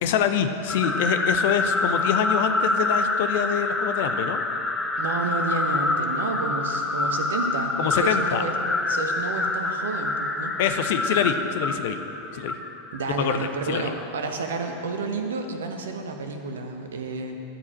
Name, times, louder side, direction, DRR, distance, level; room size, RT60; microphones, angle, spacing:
voice 1, 0.0-4.4 7.8-8.4 10.6-12.0 12.3-12.6 13.2-13.4 13.7-13.9, left 9 dB, 50° left, 8 dB, 0.6 m, -25 dB
sound 1, 0.7-14.0, left 2 dB, 10° left, 0.6 m, -26 dB
voice 2, 5.0-8.5 8.8-10.6 12.9-17.4, right 3 dB, 65° right, 5 dB, 0.9 m, -30 dB
11.5 x 4.8 x 8.1 m, 2.9 s
figure-of-eight pair, 90°, 0 cm